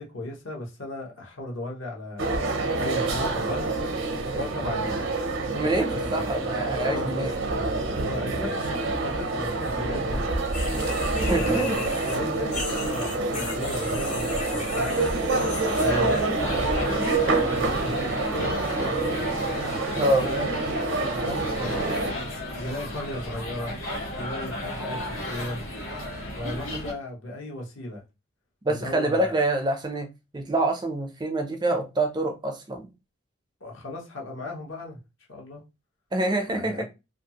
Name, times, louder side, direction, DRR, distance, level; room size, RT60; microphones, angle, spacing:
voice 1, 0.0-2.4 2.8-3.8 4.3-5.0 5.9-6.2 6.8-7.2 8.0-10.4 11.3-15.1 15.8-19.1 20.2-22.3 22.6-23.7 24.1-25.7 26.3-28.0 28.7-29.4 33.6-35.0 35.3-35.6 36.5-36.8, left 1 dB, 70° left, 0.9 m, -36 dB
sound 1, 2.2-22.1, right 2 dB, 70° right, 0.6 m, -27 dB
voice 2, 5.5-7.3 11.2-11.8 20.0-20.3 28.6-30.1 30.3-32.9 36.1-36.8, right 2 dB, 20° right, 0.4 m, -26 dB
sound 2, 10.5-16.3 16.7-17.2 17.9-18.0 18.5-18.6, left 4 dB, 35° left, 0.7 m, -37 dB
sound 3, 15.4-26.9, left 1 dB, 85° left, 1.3 m, -34 dB
2.5 x 2.3 x 2.8 m
head